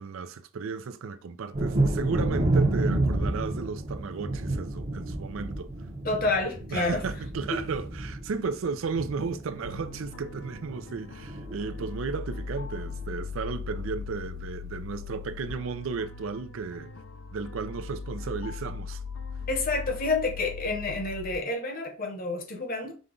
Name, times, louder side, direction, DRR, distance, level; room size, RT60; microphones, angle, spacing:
voice 1, 0.0-5.7 6.7-16.9 17.3-19.0, right 5 dB, 75° right, 0.4 m, -34 dB
Thunder, 1.5-11.0 11.2-11.9 12.4-12.5 12.8-13.1, right 2 dB, 35° right, 0.8 m, -30 dB
voice 2, 6.0-7.0 7.5-7.6 19.5-22.9, left 3 dB, 45° left, 0.9 m, -29 dB
sound 1, 9.6-21.4, left 5 dB, 70° left, 0.4 m, -39 dB
5.1 x 2.2 x 3.8 m
head